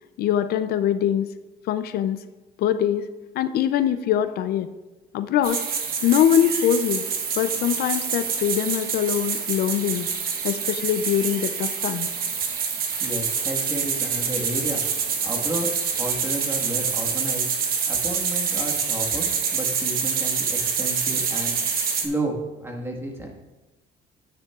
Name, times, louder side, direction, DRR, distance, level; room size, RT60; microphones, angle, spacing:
voice 1, 0.2-1.3 1.7-2.2 2.6-3.1 3.3-4.7 5.1-5.6 6.0-7.0 7.4-10.1 10.4-12.1, left 10 dB, 65° left, 11 dB, 0.5 m, -23 dB
sound 1, 5.4-22.1, right 6 dB, 60° right, 1.2 m, -26 dB
voice 2, 13.0-14.8 15.2-15.7 16.0-17.5 17.9-21.6 21.9-22.4 22.6-23.4, right 1 dB, 15° right, 0 dB, 1.6 m, -32 dB
10.5 x 9.2 x 2.4 m, 1.1 s
cardioid pair, 110°, 17 cm